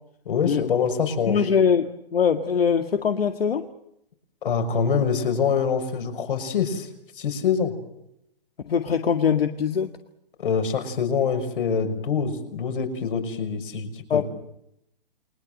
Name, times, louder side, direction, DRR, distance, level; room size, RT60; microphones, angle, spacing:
voice 1, 0.3-1.4 4.4-6.9 7.2-7.7 10.4-14.2, left 6 dB, 60° left, 6 dB, 6.2 m, -25 dB
voice 2, 1.3-1.9 2.1-3.7 8.7-9.9 14.1-14.2, left 7 dB, 80° left, 8 dB, 2.1 m, -22 dB
30.0 x 22.0 x 7.8 m, 0.78 s
hypercardioid pair, 150°, 29 cm